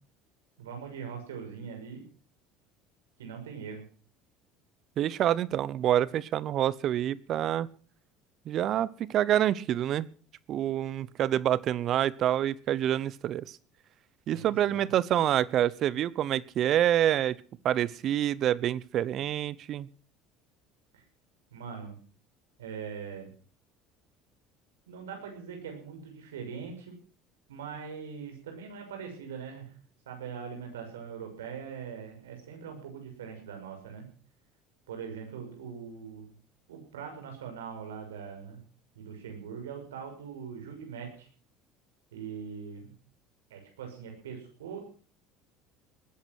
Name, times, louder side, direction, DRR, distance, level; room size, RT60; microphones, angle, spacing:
voice 1, 0.6-2.0 3.2-3.8 14.3-14.9 20.9-21.0 21.5-22.0 22.6-23.3 24.9-27.0 27.5-29.7 30.0-34.1 34.9-36.3 36.7-38.6 38.9-41.3 42.1-42.9 43.5-44.8, right 6 dB, 85° right, 3 dB, 6.4 m, -41 dB
voice 2, 5.0-7.7 8.5-10.1 10.5-13.4 14.3-17.3 17.6-19.9, right 11 dB, 50° right, 21 dB, 0.9 m, -27 dB
19.5 x 10.5 x 6.2 m, 0.42 s
hypercardioid pair, 70°, 0 cm